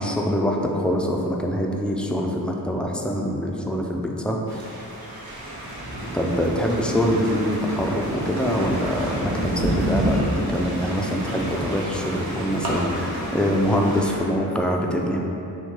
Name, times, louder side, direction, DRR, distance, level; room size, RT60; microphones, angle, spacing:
voice 1, 0.0-4.6 6.1-15.2, equal, 5° left, 0 dB, 0.4 m, -24 dB
sound 1, 4.5-14.2, right 1 dB, 65° right, 1.0 m, -29 dB
6.1 x 2.3 x 3.6 m, 2.9 s
wide cardioid pair, 80°, 40 cm